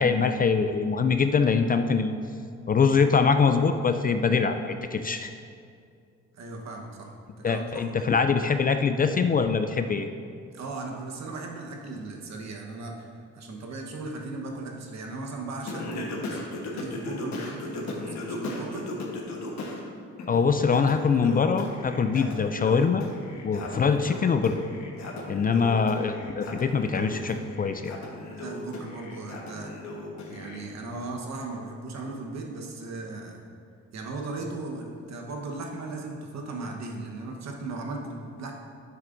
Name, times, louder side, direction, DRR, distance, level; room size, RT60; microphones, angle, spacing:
voice 1, 0.0-2.1 2.7-5.3 7.4-10.1 20.3-23.0 23.4-24.7 25.3-27.9, left 5 dB, 30° left, 8 dB, 0.3 m, -23 dB
voice 2, 6.3-8.2 10.5-13.1 13.3-18.9 28.3-29.7 30.3-33.4 33.9-38.5, right 3 dB, 65° right, 1 dB, 1.2 m, -37 dB
Singing, 15.7-19.8 20.2-30.6, left 2 dB, 65° left, 1.3 m, -37 dB
9.6 x 7.4 x 2.6 m, 2.3 s
cardioid pair, 90°, 30 cm